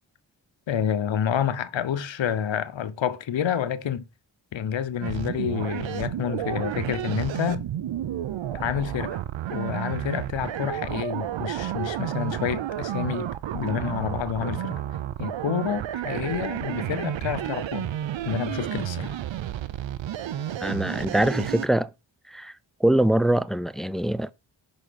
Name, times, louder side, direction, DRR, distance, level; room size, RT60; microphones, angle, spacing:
voice 1, 0.7-4.0 4.5-7.7 8.5-9.2 9.5-14.8 15.2-17.9 18.2-19.1, left 9 dB, 75° left, 0.9 m, -29 dB
sound 1, 5.0-21.7, right 11 dB, 80° right, 0.7 m, -31 dB
voice 2, 20.6-21.9 22.3-22.6 22.8-24.3, right 1 dB, ahead, 0.4 m, -23 dB
6.0 x 3.9 x 5.0 m
cardioid pair, 45°, 46 cm